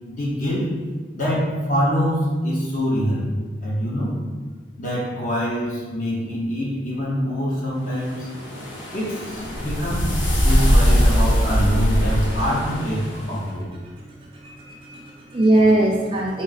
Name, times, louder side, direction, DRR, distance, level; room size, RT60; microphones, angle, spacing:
voice 1, 0.1-0.7 1.2-3.3 3.6-4.2 4.8-8.6 8.9-13.7, equal, 45° left, -5 dB, 0.9 m, -25 dB
sound 1, 8.0-13.3, equal, 90° left, 1.1 m, -21 dB
voice 2, 14.3-16.4, right 1 dB, 30° right, -2 dB, 0.4 m, -20 dB
4.1 x 3.2 x 4.0 m, 1.4 s
head